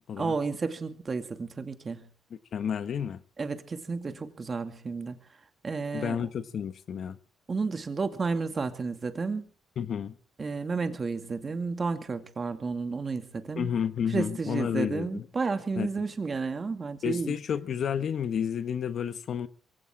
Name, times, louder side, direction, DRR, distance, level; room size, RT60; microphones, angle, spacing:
voice 1, 0.2-2.1 3.4-5.2 5.6-6.2 7.5-9.5 10.4-13.8 14.1-17.4, right 4 dB, 35° right, 2.3 m, -32 dB
voice 2, 2.5-3.2 5.9-7.2 9.8-10.2 13.6-15.2 15.7-15.9 17.0-19.5, left 8 dB, 60° left, 1.1 m, -31 dB
23.0 x 16.5 x 3.7 m
cardioid pair, 90°, 0 cm